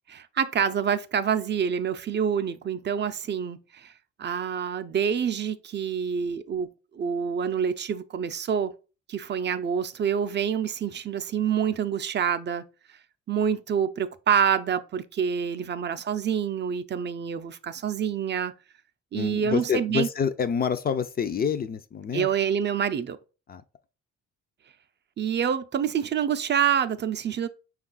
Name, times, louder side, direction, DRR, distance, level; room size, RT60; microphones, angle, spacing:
voice 1, 0.1-3.9 4.2-8.7 9.1-12.6 13.3-18.5 19.1-20.1 22.1-23.2 25.2-27.5, right 8 dB, 35° right, 0.4 m, -27 dB
voice 2, 19.1-22.3 23.5-23.6, left 7 dB, 30° left, 0.4 m, -27 dB
5.2 x 2.4 x 3.8 m
cardioid pair, 90°, 30 cm